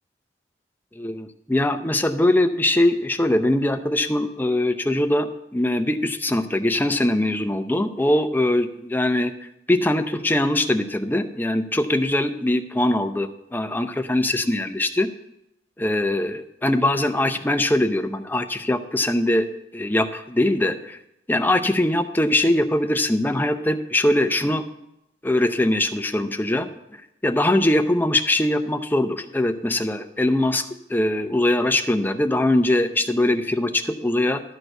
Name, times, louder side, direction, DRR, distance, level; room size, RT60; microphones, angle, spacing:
voice 1, 1.0-9.3 9.7-15.1 15.8-19.5 19.7-21.0 21.3-24.6 25.2-26.7 27.2-34.4, left 1 dB, 10° left, 8 dB, 0.6 m, -22 dB
12.0 x 4.5 x 7.9 m, 0.84 s
head